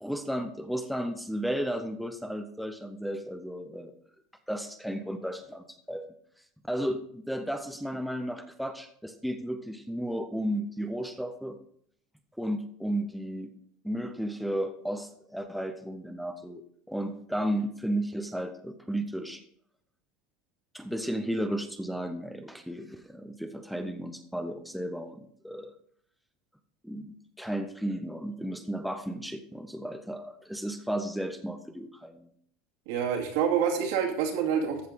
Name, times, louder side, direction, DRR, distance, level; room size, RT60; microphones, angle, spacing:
voice 1, 0.0-3.9 4.5-6.1 6.7-11.6 12.4-13.5 13.8-19.4 20.7-25.7 26.8-32.3, right 1 dB, ahead, 7 dB, 0.7 m, -34 dB
voice 2, 32.9-34.9, right 7 dB, 75° right, 0 dB, 2.6 m, -27 dB
14.5 x 5.5 x 4.0 m, 0.64 s
supercardioid pair, 135°, 0 cm